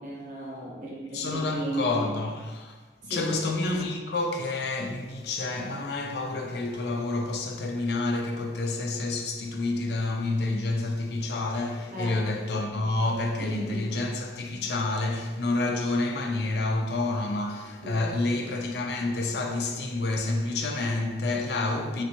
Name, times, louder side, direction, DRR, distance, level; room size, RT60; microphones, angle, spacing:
voice 1, 0.0-2.1 3.0-3.4 11.9-12.3 13.4-13.9 17.8-18.3, right 1 dB, 45° right, 1.0 m, -35 dB
voice 2, 1.1-2.8 3.0-22.0, left 2 dB, 70° left, 0.4 m, -29 dB
3.2 x 2.8 x 2.8 m
head